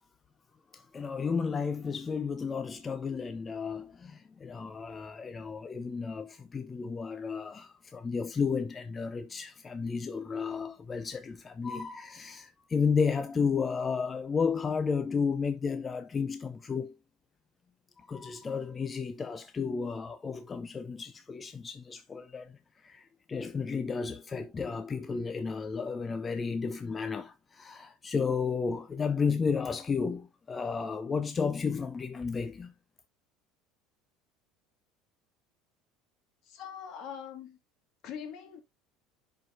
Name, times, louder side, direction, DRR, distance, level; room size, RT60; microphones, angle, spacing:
voice 1, 0.7-16.9 18.1-32.7, left 5 dB, 30° left, 0.6 m, -32 dB
voice 2, 36.5-37.6 38.0-38.6, left 8 dB, 60° left, 2.0 m, -42 dB
10.5 x 4.7 x 2.5 m
hypercardioid pair, 80°, 0 cm